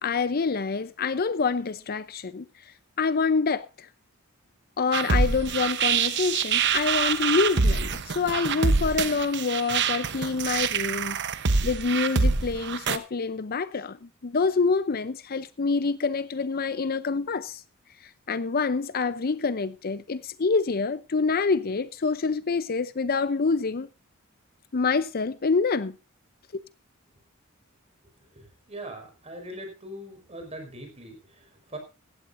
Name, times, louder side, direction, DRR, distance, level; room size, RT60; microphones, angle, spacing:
voice 1, 0.0-3.9 4.8-11.2 11.6-17.6 18.0-23.9 24.7-25.9 26.5-26.6, left 4 dB, 45° left, 0.6 m, -26 dB
sound 1, 4.9-13.0, right 5 dB, 55° right, 0.9 m, -25 dB
voice 2, 28.3-31.8, right 1 dB, 30° right, 4.9 m, -41 dB
16.0 x 15.5 x 2.6 m
head